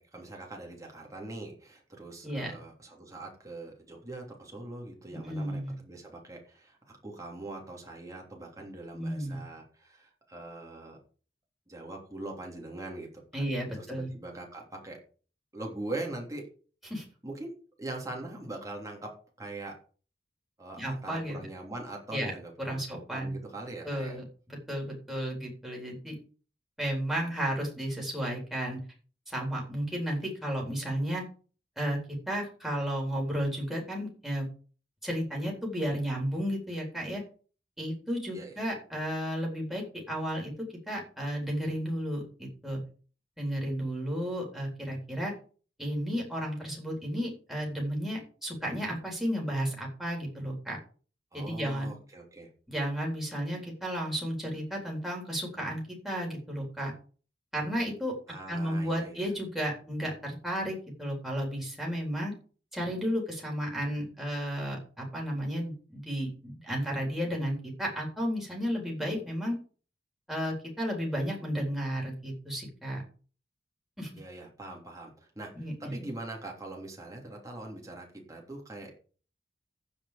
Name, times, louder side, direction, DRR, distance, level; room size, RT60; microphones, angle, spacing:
voice 1, 0.0-11.0 11.7-15.0 15.5-16.4 17.2-17.5 17.8-19.1 19.4-19.7 20.6-24.2 38.3-38.6 51.3-52.5 58.3-59.3 74.2-78.9, right 2 dB, 20° right, 0 dB, 3.3 m, -42 dB
voice 2, 5.1-5.7 8.9-9.4 13.3-14.1 16.9-17.0 20.8-21.5 22.1-22.3 22.6-23.4 23.8-24.2 24.7-26.2 26.8-28.8 29.3-31.2 31.8-32.0 32.3-34.5 35.0-37.2 37.8-42.8 43.4-45.3 45.8-50.8 51.3-51.9 52.7-56.9 57.5-58.1 58.5-62.3 62.7-69.5 70.3-73.0 74.0-74.1 75.6-75.9, equal, ahead, -2 dB, 3.9 m, -33 dB
15.5 x 5.2 x 5.1 m, 0.40 s
head